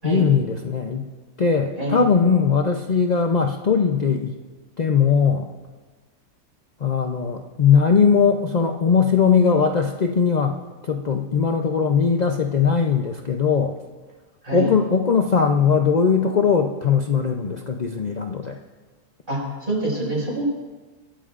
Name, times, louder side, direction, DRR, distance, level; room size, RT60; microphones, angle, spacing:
voice 1, 0.0-1.1 1.4-4.4 4.8-5.5 6.8-10.6 10.8-13.8 14.5-18.6, left 6 dB, 60° left, 3 dB, 0.4 m, -20 dB
voice 2, 19.3-20.4, right 1 dB, 30° right, -4 dB, 5.9 m, -26 dB
24.5 x 14.0 x 2.5 m, 1.3 s
omnidirectional pair, 1.7 m